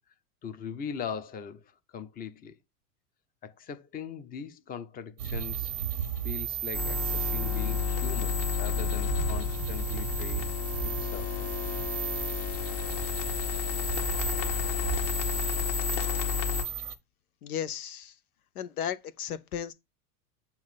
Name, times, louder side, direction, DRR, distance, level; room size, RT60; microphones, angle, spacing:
voice 1, 0.4-2.6 3.4-5.7 6.2-10.5 10.8-11.8, left 7 dB, 20° left, 0.7 m, -40 dB
sound 1, 5.2-17.0, right 10 dB, 75° right, 0.9 m, -35 dB
sound 2, 6.7-16.6, left 8 dB, 45° left, 1.5 m, -31 dB
voice 2, 17.4-18.1 18.5-19.7, left 9 dB, 70° left, 0.7 m, -35 dB
7.2 x 2.6 x 5.7 m
figure-of-eight pair, 90°, 46 cm